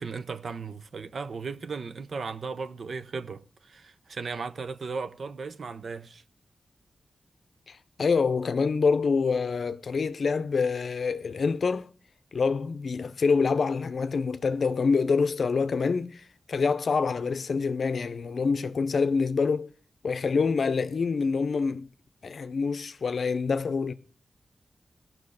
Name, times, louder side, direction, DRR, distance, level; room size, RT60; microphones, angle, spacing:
voice 1, 0.0-6.2, right 4 dB, 70° right, 0.7 m, -36 dB
voice 2, 7.7-11.9 12.3-19.7 20.0-21.9 22.2-23.9, left 5 dB, 70° left, 0.6 m, -26 dB
17.5 x 6.1 x 6.5 m
wide cardioid pair, 95°, 0 cm